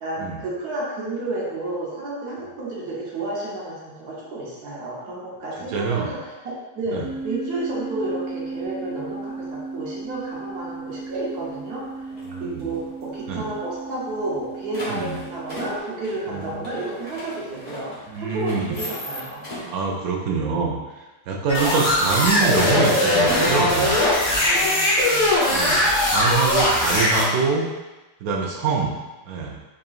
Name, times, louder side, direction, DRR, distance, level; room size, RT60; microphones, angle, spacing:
voice 1, 0.0-7.0 7.2-12.0 12.4-19.5 24.4-25.4, right 2 dB, 60° right, -5 dB, 1.3 m, -31 dB
voice 2, 5.7-6.1 6.9-7.0 12.3-12.7 13.3-13.5 14.9-15.2 16.3-16.5 18.1-18.8 19.6-20.8 21.3-24.0 25.5-27.6 28.2-28.9 29.3-29.6, right 5 dB, 80° right, 0 dB, 0.8 m, -25 dB
sound 1, 7.0-15.8, right 3 dB, 80° left, 0.6 m, -35 dB
sound 2, 10.9-11.0 11.5-11.8 12.1-13.0 13.3-13.4 13.6-13.7 14.1-19.8, left 1 dB, 30° left, 0.9 m, -38 dB
sound 3, 21.5-27.2, left 1 dB, 55° left, 0.9 m, -20 dB
3.8 x 3.6 x 2.4 m, 1.1 s
omnidirectional pair, 2.1 m